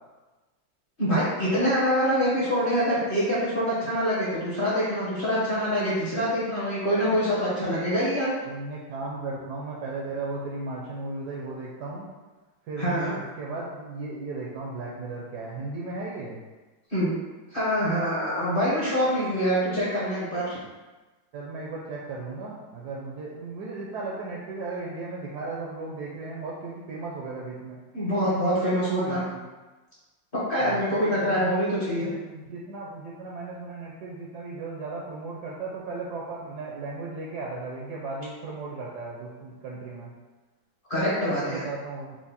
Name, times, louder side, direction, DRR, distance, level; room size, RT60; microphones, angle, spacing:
voice 1, 1.0-8.3 12.8-13.1 16.9-17.2 17.5-20.6 27.9-29.2 30.5-32.1 40.9-41.6, equal, 40° left, -9 dB, 0.8 m, -25 dB
voice 2, 8.4-12.1 12.7-16.4 21.3-27.8 28.2-29.4 30.6-31.5 32.0-40.1 40.9-42.2, right 3 dB, 70° right, -3 dB, 1.0 m, -36 dB
4.6 x 2.1 x 4.1 m, 1.2 s
omnidirectional pair, 2.2 m